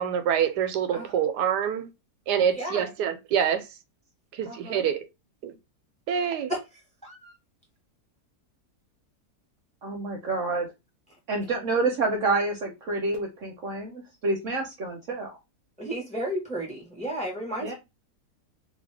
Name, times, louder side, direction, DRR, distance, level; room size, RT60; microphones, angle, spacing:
voice 1, 0.0-1.9 2.3-3.6 4.3-5.0 5.4-5.5 6.1-6.5, right 8 dB, 85° right, 1.2 m, -26 dB
voice 2, 4.4-4.9 6.5-7.3 15.8-17.7, right 1 dB, 5° left, 1.0 m, -33 dB
voice 3, 9.8-10.7 11.3-15.4 17.6-17.7, right 3 dB, 60° right, 0.9 m, -28 dB
2.8 x 2.7 x 3.2 m
omnidirectional pair, 1.7 m